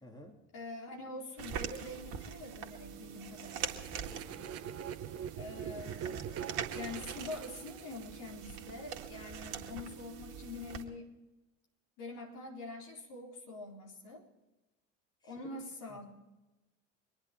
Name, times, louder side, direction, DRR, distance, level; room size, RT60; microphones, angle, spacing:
voice 1, 0.0-0.4 4.0-4.6 15.2-15.5 15.9-16.0, equal, 10° left, 1 dB, 2.9 m, -53 dB
voice 2, 0.5-4.0 5.3-6.3 6.7-11.1 12.0-14.3 15.2-16.1, left 2 dB, 55° left, 0 dB, 4.1 m, -45 dB
sound 1, 1.4-10.8, right 8 dB, 60° right, 2.0 m, -43 dB
sound 2, 3.5-8.4, right 9 dB, 40° right, 0.8 m, -43 dB
24.0 x 10.5 x 4.5 m, 1.0 s
figure-of-eight pair, 65°, 38 cm